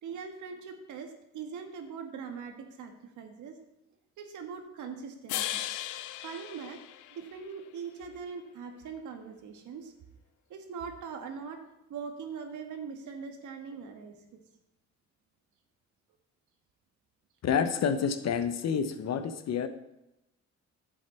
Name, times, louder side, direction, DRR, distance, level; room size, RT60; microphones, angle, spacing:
voice 1, 0.0-3.6 4.2-5.6 6.2-6.8 7.1-9.9 10.5-11.6 11.9-14.4, right 6 dB, 80° right, 5 dB, 1.6 m, -41 dB
sound 1, 5.3-7.6, left 13 dB, 80° left, 0.6 m, -37 dB
voice 2, 17.4-19.7, left 7 dB, 60° left, 9 dB, 1.0 m, -28 dB
10.5 x 7.9 x 4.4 m, 0.89 s
cardioid pair, 90°, 30 cm